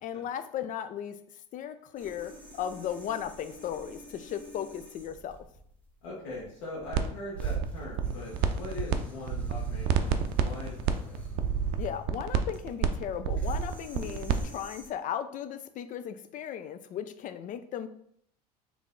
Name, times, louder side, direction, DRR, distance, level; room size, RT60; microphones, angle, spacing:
voice 1, 0.0-1.2 1.5-5.4 11.8-17.9, left 9 dB, 40° left, 11 dB, 0.4 m, -36 dB
sound 1, 2.0-14.9, left 2 dB, 5° left, 1.1 m, -48 dB
voice 2, 6.0-11.2, left 2 dB, 70° left, -6 dB, 1.4 m, -41 dB
sound 2, 6.9-7.1 7.4-9.0 9.2-14.4, right 8 dB, 55° right, 0.5 m, -28 dB
3.6 x 3.1 x 3.8 m, 0.67 s
hypercardioid pair, 80°, 20 cm